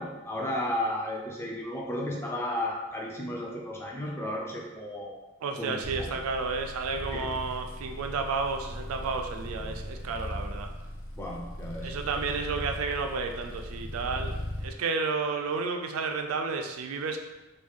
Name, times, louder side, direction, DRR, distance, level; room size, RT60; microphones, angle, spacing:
voice 1, 0.0-5.2 5.6-6.1 7.1-7.3 11.2-12.3, left 1 dB, 10° left, -1 dB, 0.4 m, -34 dB
voice 2, 5.4-10.7 11.8-17.2, right 4 dB, 75° right, 5 dB, 0.4 m, -32 dB
sound 1, 5.8-14.7, left 1 dB, 65° left, 0.6 m, -38 dB
3.1 x 2.2 x 3.5 m, 1.0 s
head